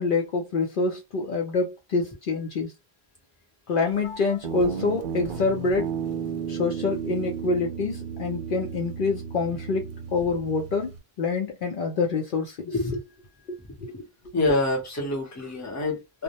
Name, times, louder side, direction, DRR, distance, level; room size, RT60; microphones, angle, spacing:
voice 1, 0.0-2.7 3.7-5.9 6.5-13.0 13.5-13.9 14.5-14.6, left 3 dB, 60° left, 0.7 m, -26 dB
Guitar, 4.4-11.0, right 7 dB, 55° right, 0.7 m, -34 dB
voice 2, 12.7-13.0 13.9-14.1 14.3-16.2, left 2 dB, 20° left, 0.8 m, -27 dB
2.2 x 2.1 x 2.8 m
omnidirectional pair, 1.0 m